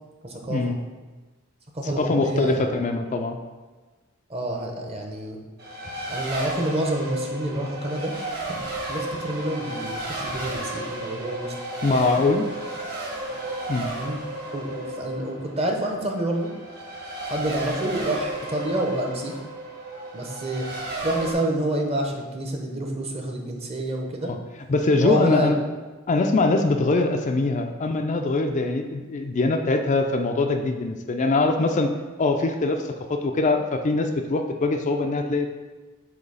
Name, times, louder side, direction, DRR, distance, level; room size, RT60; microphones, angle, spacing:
voice 1, 0.2-0.8 1.7-2.7 4.3-5.4 6.1-8.1 8.5-8.6 8.9-11.5 11.9-12.2 13.9-14.2 14.5-16.5 17.3-19.4 20.1-20.7 21.0-24.3 25.0-25.6, right 1 dB, 30° right, 1 dB, 0.9 m, -28 dB
voice 2, 2.0-3.4 11.8-12.5 13.7-13.9 24.3-24.4 24.7-25.6 26.1-35.5, left 3 dB, 35° left, 5 dB, 0.4 m, -23 dB
Race car auto racing, 5.6-21.3, right 1 dB, 50° right, 1.7 m, -33 dB
7.9 x 2.8 x 5.5 m, 1.3 s
head